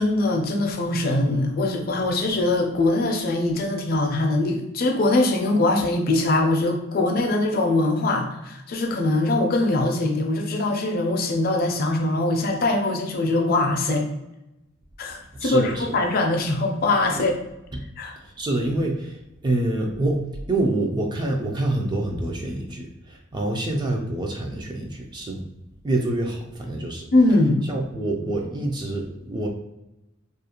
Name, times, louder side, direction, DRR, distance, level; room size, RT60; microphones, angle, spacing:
voice 1, 0.0-14.1 15.0-17.4 18.0-18.2 27.1-27.7, left 2 dB, 45° left, 3 dB, 0.4 m, -22 dB
voice 2, 15.4-16.0 17.0-17.2 17.7-17.8 18.2-25.4 25.8-27.0 27.6-29.5, right 2 dB, 20° right, 1 dB, 0.3 m, -26 dB
2.4 x 2.1 x 2.8 m, 0.91 s
head